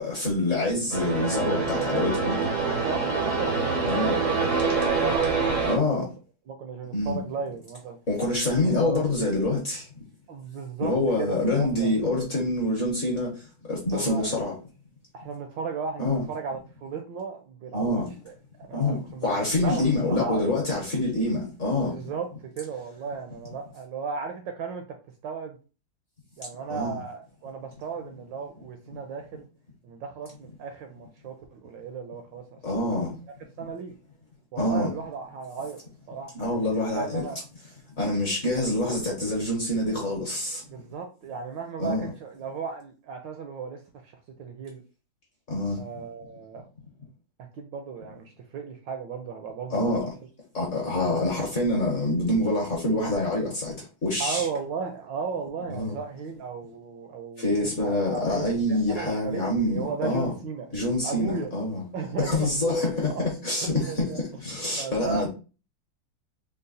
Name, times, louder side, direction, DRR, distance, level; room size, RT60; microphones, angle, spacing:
voice 1, 0.0-2.4 3.9-4.2 5.7-6.0 6.9-7.2 8.1-9.9 10.8-13.3 13.7-14.5 16.0-16.2 17.7-18.1 18.7-22.0 26.7-27.0 32.6-33.1 34.6-34.9 36.3-37.2 38.0-40.6 41.8-42.0 45.5-45.8 49.7-50.0 50.5-54.5 55.7-55.9 57.4-60.3 60.7-61.8 62.2-65.3, left 2 dB, 45° left, 1.1 m, -26 dB
sound 1, 0.9-5.8, right 4 dB, 50° right, 0.4 m, -25 dB
voice 2, 2.6-4.5 4.7-6.1 6.5-8.0 8.6-9.1 10.3-12.0 13.9-14.3 15.1-19.4 19.6-20.5 21.8-22.3 22.6-25.0 25.2-25.6 26.4-29.5 29.8-32.8 33.6-33.9 34.5-35.8 36.1-37.4 40.7-44.8 45.8-46.6 47.5-49.9 51.0-51.2 54.2-57.5 57.8-60.7 61.0-61.5 61.9-62.5 63.1-63.3 63.6-64.2 64.8-65.3, right 6 dB, 75° right, 1.1 m, -35 dB
4.0 x 2.1 x 3.9 m
omnidirectional pair, 2.4 m